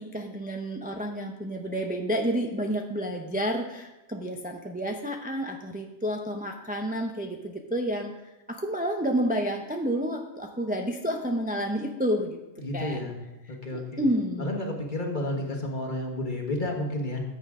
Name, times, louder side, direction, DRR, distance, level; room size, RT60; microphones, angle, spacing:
voice 1, 0.0-8.1 8.5-12.4 12.7-13.0 13.7-14.5, equal, 10° right, 2 dB, 0.7 m, -30 dB
voice 2, 12.6-13.2 13.5-14.0 14.4-17.2, left 1 dB, 40° left, 1 dB, 1.7 m, -31 dB
13.5 x 8.0 x 3.7 m, 0.98 s
omnidirectional pair, 1.3 m